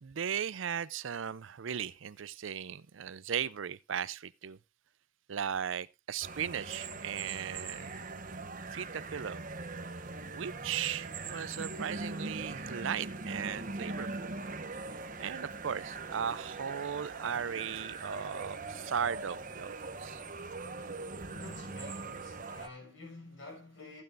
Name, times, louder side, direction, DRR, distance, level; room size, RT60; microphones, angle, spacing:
voice 1, 0.0-4.6 5.3-8.0 8.7-9.4 10.3-14.3 15.2-20.2, right 8 dB, 75° right, 0.5 m, -37 dB
sound 1, 6.2-22.7, right 3 dB, 40° right, 1.2 m, -41 dB
voice 2, 21.3-24.0, left 2 dB, 80° left, 5.9 m, -49 dB
15.5 x 9.0 x 2.5 m
head